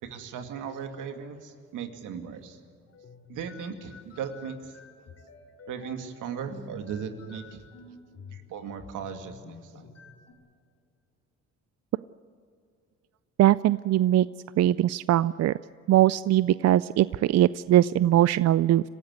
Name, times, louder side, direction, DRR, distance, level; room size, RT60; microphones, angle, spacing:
voice 1, 0.0-2.6 3.3-4.7 5.7-7.6 8.3-9.9, right 7 dB, 85° right, 6 dB, 2.3 m, -37 dB
sound 1, 2.9-10.3, left 5 dB, 55° left, 3.2 m, -50 dB
voice 2, 13.4-14.3 14.6-15.5 15.9-18.8, right 13 dB, 60° right, 17 dB, 0.4 m, -21 dB
26.5 x 15.5 x 8.2 m, 2.3 s
cardioid pair, 90°, 30 cm